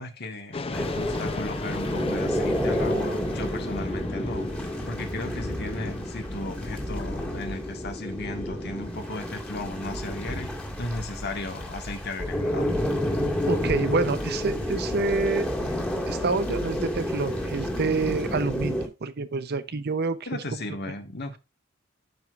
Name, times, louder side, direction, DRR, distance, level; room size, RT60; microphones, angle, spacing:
voice 1, 0.0-4.5 4.9-10.5 10.8-12.7 20.2-21.4, left 2 dB, 55° left, 1.6 m, -35 dB
sound 1, 0.5-16.8, left 3 dB, 30° left, 0.5 m, -40 dB
sound 2, 0.7-18.9, equal, 5° left, 1.8 m, -30 dB
voice 2, 13.5-15.5 16.1-20.2, right 4 dB, 55° right, 0.7 m, -27 dB
12.0 x 5.0 x 2.4 m
head